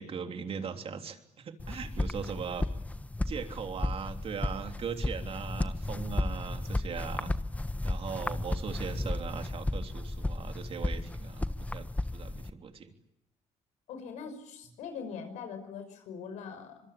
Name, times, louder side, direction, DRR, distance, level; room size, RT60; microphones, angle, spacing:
voice 1, 0.0-2.7 3.3-7.4 7.8-12.9, right 6 dB, 50° right, 6 dB, 3.3 m, -39 dB
sound 1, 1.6-12.5, left 2 dB, 10° left, 1.3 m, -34 dB
voice 2, 13.9-16.8, left 6 dB, 80° left, 8 dB, 5.9 m, -42 dB
25.5 x 22.5 x 8.5 m, 0.83 s
supercardioid pair, 75°, 12 cm